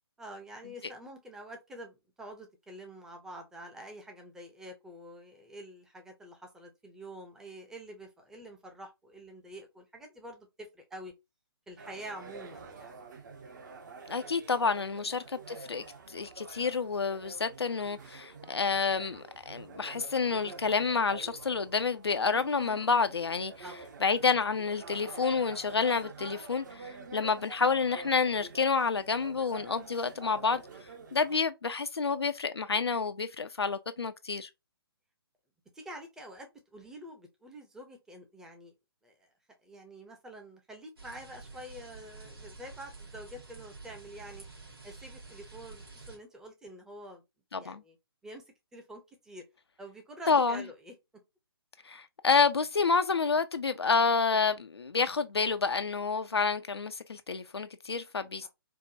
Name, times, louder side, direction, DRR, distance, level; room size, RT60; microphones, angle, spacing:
voice 1, 0.2-11.1 11.7-13.0 14.9-15.1 23.6-23.9 35.7-38.7 39.0-39.3 39.6-44.4 44.8-47.2 47.6-48.0 48.2-48.4 48.7-49.4 49.8-50.9 58.4-58.5, right 1 dB, 5° right, 0.5 m, -47 dB
sound 1, 11.8-31.4, right 4 dB, 45° right, 0.8 m, -48 dB
voice 2, 14.1-23.5 24.0-30.6 31.1-34.5 47.5-47.8 50.3-50.6 51.8-58.5, left 5 dB, 75° left, 0.4 m, -29 dB
sound 2, 41.0-46.2, right 3 dB, 65° right, 2.1 m, -49 dB
4.5 x 2.1 x 2.5 m
figure-of-eight pair, 135°, 13 cm